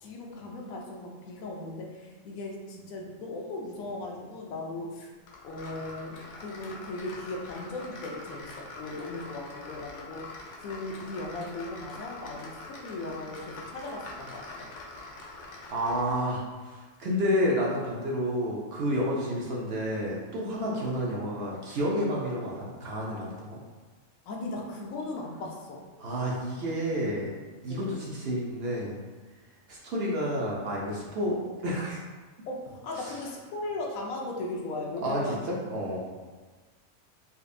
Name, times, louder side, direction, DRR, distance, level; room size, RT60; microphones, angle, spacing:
voice 1, 0.0-5.1 5.4-14.7 24.3-25.8 27.7-27.9 32.5-35.4, left 2 dB, 85° left, 0 dB, 1.1 m, -37 dB
sound 1, 5.3-16.4, left 2 dB, 70° left, 0.9 m, -44 dB
voice 2, 15.7-23.6 26.0-27.3 27.6-29.0 29.7-32.0 33.0-33.1 35.0-35.2 35.7-36.1, equal, 60° right, -4 dB, 0.7 m, -30 dB
4.1 x 2.5 x 2.5 m, 1.3 s
omnidirectional pair, 1.4 m